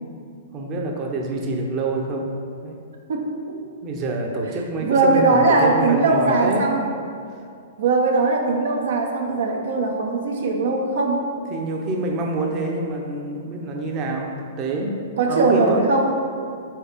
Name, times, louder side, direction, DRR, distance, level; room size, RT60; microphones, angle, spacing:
voice 1, 0.5-2.3 2.6-2.8 3.8-6.7 11.5-15.0 15.3-15.9, right 2 dB, 35° right, 0 dB, 0.8 m, -26 dB
voice 2, 3.1-3.6 4.8-6.8 7.8-11.2 15.2-16.1, right 3 dB, 75° right, 0 dB, 0.8 m, -20 dB
4.6 x 4.2 x 5.1 m, 2.3 s
hypercardioid pair, 125°, 0 cm